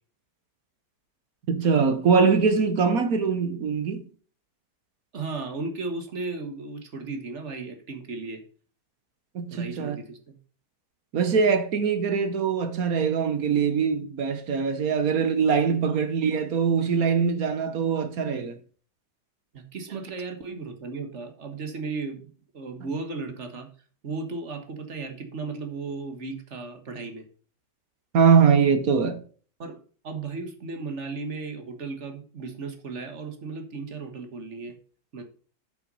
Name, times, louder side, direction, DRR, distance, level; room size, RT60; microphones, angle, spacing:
voice 1, 1.5-4.1 9.3-10.0 11.1-18.6 28.1-29.2, right 6 dB, 60° right, 1.4 m, -22 dB
voice 2, 5.1-8.4 9.5-10.4 15.9-16.0 19.5-23.7 24.0-27.3 29.6-34.8 35.1-35.2, right 3 dB, 45° right, 1.7 m, -35 dB
9.6 x 5.6 x 5.4 m
omnidirectional pair, 1.8 m